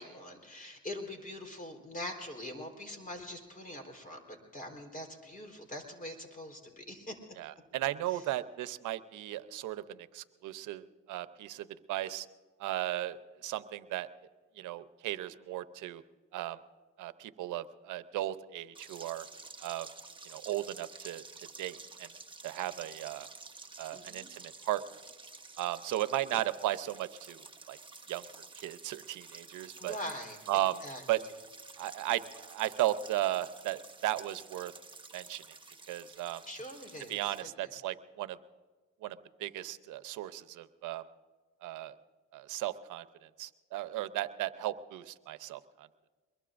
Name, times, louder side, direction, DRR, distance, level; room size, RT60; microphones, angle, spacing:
voice 1, 0.0-7.2 8.1-8.3 23.9-24.3 29.8-30.4 30.8-31.0 36.5-37.7, left 1 dB, 30° left, 4 dB, 4.0 m, -43 dB
voice 2, 7.4-12.3 12.6-14.1 14.6-16.0 16.3-16.6 17.0-19.3 19.6-19.9 20.2-21.2 21.6-22.1 22.4-23.3 23.8-24.8 25.6-27.8 28.1-28.3 28.6-30.0 30.5-30.8 31.1-31.2 31.8-34.7 35.1-35.4 35.9-36.4 37.1-38.4 39.0-41.0 41.6-41.9 42.3-45.9, right 14 dB, 85° right, 13 dB, 0.8 m, -36 dB
sound 1, 18.7-37.4, right 3 dB, 15° right, 1.3 m, -51 dB
23.0 x 22.0 x 2.6 m, 1.4 s
cardioid pair, 90°, 30 cm